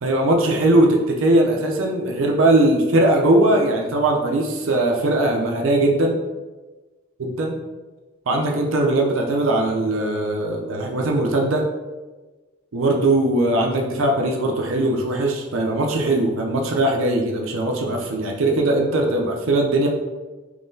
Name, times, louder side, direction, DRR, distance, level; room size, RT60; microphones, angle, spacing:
voice 1, 0.0-6.2 7.2-7.6 8.3-11.7 12.7-19.9, right 1 dB, 90° right, 1 dB, 0.5 m, -20 dB
3.7 x 2.9 x 2.6 m, 1.2 s
head